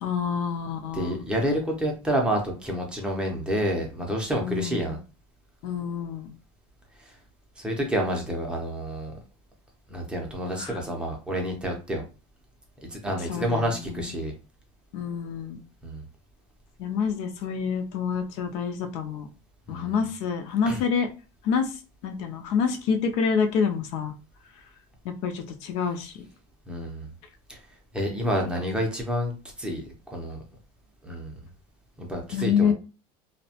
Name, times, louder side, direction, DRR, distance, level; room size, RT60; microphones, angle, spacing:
voice 1, 0.0-1.2 4.4-5.0 5.6-6.3 10.6-10.8 13.3-14.1 14.9-15.6 16.8-19.3 19.7-21.1 21.4-21.8 22.0-24.1 25.0-26.3 32.3-32.7, left 6 dB, 55° left, 6 dB, 0.4 m, -27 dB
voice 2, 0.9-5.0 7.0-7.1 7.6-9.1 9.9-12.0 12.8-14.3 15.8-16.0 19.7-20.0 20.7-20.8 26.7-27.1 27.5-27.6 27.9-30.4 31.0-31.3 32.0-32.7, equal, 5° right, 1 dB, 0.5 m, -29 dB
2.7 x 2.1 x 2.7 m, 0.33 s
cardioid pair, 165°, 13 cm